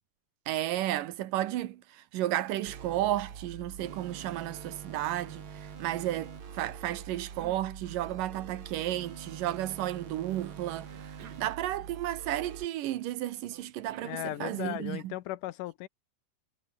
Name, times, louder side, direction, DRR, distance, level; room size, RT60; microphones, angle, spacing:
voice 1, 0.5-15.1, right 14 dB, 85° right, 2.8 m, -33 dB
Cough, 2.6-3.5 3.7-5.8 6.3-8.3 10.3-12.3 13.5-14.8, right 10 dB, 65° right, 2.9 m, -54 dB
sound 1, 2.7-12.7, right 7 dB, 45° right, 2.6 m, -45 dB
voice 2, 14.0-15.9, left 16 dB, 85° left, 2.4 m, -36 dB
omnidirectional pair, 3.7 m